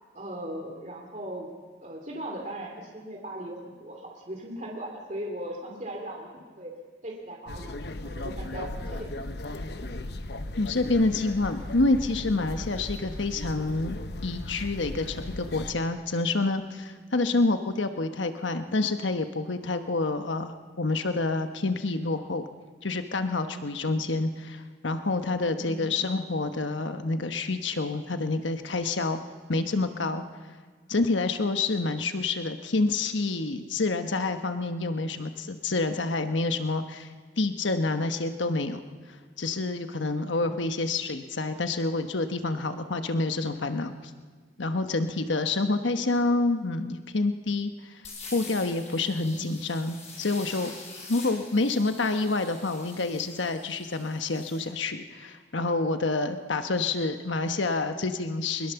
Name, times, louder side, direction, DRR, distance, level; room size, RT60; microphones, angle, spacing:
voice 1, 0.1-1.5 1.8-6.7 7.0-9.2 9.4-9.5 17.1-17.4 23.9-24.2 25.6-26.0 40.4-40.7 49.2-49.6, right 1 dB, 40° right, 0 dB, 2.7 m, -39 dB
sound 1, 7.5-15.7, left 1 dB, 60° left, 1.0 m, -37 dB
voice 2, 10.6-22.4 22.8-29.2 29.5-30.2 30.9-37.1 37.4-38.8 39.4-43.9 44.6-47.9 48.3-50.7 51.1-58.7, left 3 dB, 85° left, 8 dB, 1.2 m, -28 dB
sound 2, 48.0-54.6, left 3 dB, 35° left, 6.4 m, -45 dB
22.0 x 21.5 x 7.0 m, 1.5 s
head